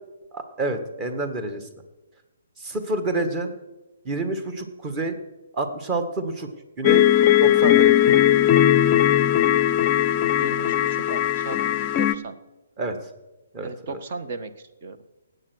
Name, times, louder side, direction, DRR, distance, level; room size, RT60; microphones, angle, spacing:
voice 1, 0.3-1.7 2.6-3.5 4.0-5.2 5.5-6.5 6.8-7.1 7.4-7.9 12.8-13.0 13.5-14.0, right 2 dB, 25° right, 8 dB, 1.7 m, -28 dB
sound 1, 6.8-12.1, left 11 dB, 30° left, 0.5 m, -18 dB
voice 2, 10.4-12.3 13.6-15.0, right 4 dB, 45° right, 10 dB, 1.3 m, -36 dB
18.0 x 8.1 x 6.4 m, 1.0 s
figure-of-eight pair, 135°, 0 cm